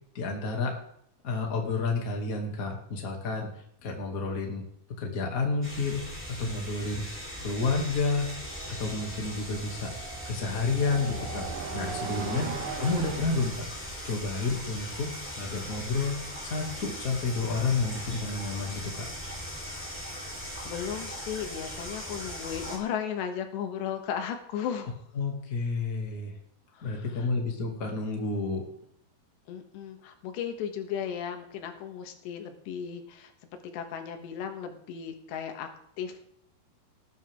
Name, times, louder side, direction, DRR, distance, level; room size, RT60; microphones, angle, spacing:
voice 1, 0.1-0.8 1.2-3.5 3.8-4.6 5.0-6.1 6.4-7.1 7.4-8.3 8.8-9.9 10.2-11.5 11.7-12.5 12.8-13.7 14.0-19.1 25.2-26.3 26.8-28.7, left 3 dB, 30° left, 0 dB, 1.9 m, -30 dB
sound 1, 5.6-22.8, equal, 5° left, 2.6 m, -39 dB
sound 2, 8.3-13.7, right 5 dB, 60° right, 2.7 m, -38 dB
voice 2, 20.7-25.0 26.7-27.3 29.5-33.3 33.6-35.7 36.0-36.3, left 8 dB, 90° left, 5 dB, 3.6 m, -35 dB
19.5 x 9.6 x 3.6 m, 0.71 s
omnidirectional pair, 4.9 m